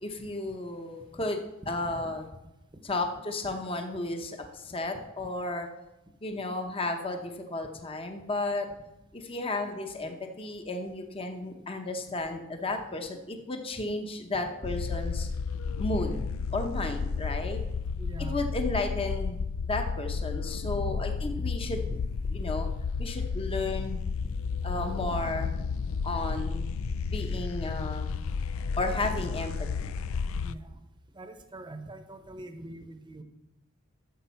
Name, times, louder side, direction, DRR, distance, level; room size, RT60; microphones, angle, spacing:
voice 1, 0.0-2.2 2.8-5.7 6.2-8.7 9.1-15.3 15.8-16.2 16.5-17.6 18.3-21.8 22.3-22.7 23.0-24.0 24.6-25.5 26.0-26.7 27.1-28.2 28.8-29.9, left 2 dB, 25° left, 5 dB, 0.8 m, -33 dB
sound 1, 14.6-30.5, left 5 dB, 70° left, 0.4 m, -32 dB
voice 2, 18.0-18.5 20.7-20.8 21.3-21.4 21.8-22.0 22.4-22.5 24.2-24.3 30.4-30.8 31.1-33.2, right 2 dB, 20° right, 8 dB, 0.8 m, -44 dB
10.5 x 7.2 x 5.7 m, 0.96 s
head